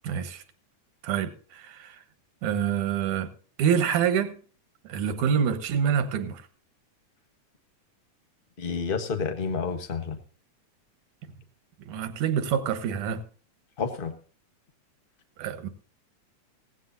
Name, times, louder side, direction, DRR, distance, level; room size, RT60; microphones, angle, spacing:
voice 1, 0.0-0.4 1.0-2.0 2.4-3.3 3.6-4.4 4.8-6.4 11.9-13.2 15.4-15.7, right 8 dB, 85° right, 2.7 m, -26 dB
voice 2, 8.6-10.2 13.8-14.1, left 5 dB, 70° left, 0.5 m, -29 dB
17.0 x 15.5 x 2.7 m
omnidirectional pair, 3.4 m